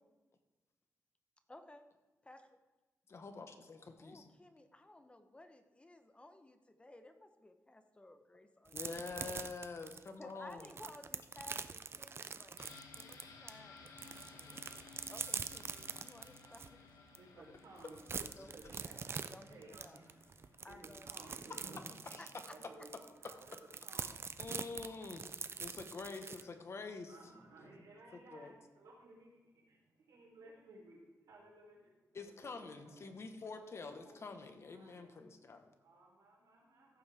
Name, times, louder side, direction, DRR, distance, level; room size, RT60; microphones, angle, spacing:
voice 1, 1.5-1.8 2.2-2.5 4.0-9.5 10.2-12.6 13.0-14.7 15.1-16.8 18.4-18.5 18.8-19.0 19.3-20.0 20.6-21.1 21.7-21.8 22.2-22.6, left 1 dB, 20° left, 8 dB, 0.9 m, -57 dB
voice 2, 3.1-4.3 8.7-10.7 22.1-22.2 24.4-27.1 28.3-28.5 32.1-35.7, left 4 dB, 45° left, 7 dB, 1.3 m, -47 dB
sound 1, 8.7-13.5 13.9-16.7 17.1-17.2 17.5-26.4, right 5 dB, 40° right, 0.5 m, -44 dB
sound 2, 12.6-22.2 22.5-22.6, left 4 dB, 90° left, 1.7 m, -58 dB
voice 3, 16.3-21.9 22.5-25.8 26.1-26.5 27.0-33.2 33.5-34.4 34.7-37.0, right 2 dB, 90° right, -2 dB, 3.8 m, -59 dB
15.0 x 8.6 x 3.5 m, 1.2 s
cardioid pair, 100°, 6 cm